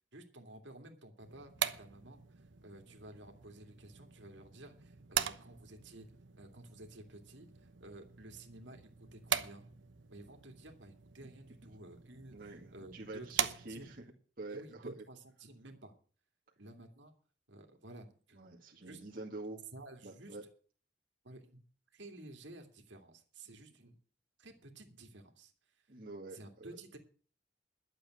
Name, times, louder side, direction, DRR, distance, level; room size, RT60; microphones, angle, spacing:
voice 1, 0.1-6.1 6.4-9.7 10.1-14.0 14.5-16.0 16.6-17.2 17.5-19.0 19.7-20.4 21.2-21.6 21.9-24.0 24.4-25.8 26.3-27.0, right 2 dB, 75° right, 4 dB, 2.5 m, -53 dB
sound 1, 1.2-14.1, right 9 dB, 90° right, 1.0 m, -42 dB
voice 2, 12.3-14.0 14.4-15.0 18.3-19.6 20.0-20.4 25.9-26.7, right 2 dB, 50° right, -2 dB, 2.1 m, -46 dB
12.0 x 7.8 x 7.9 m, 0.42 s
head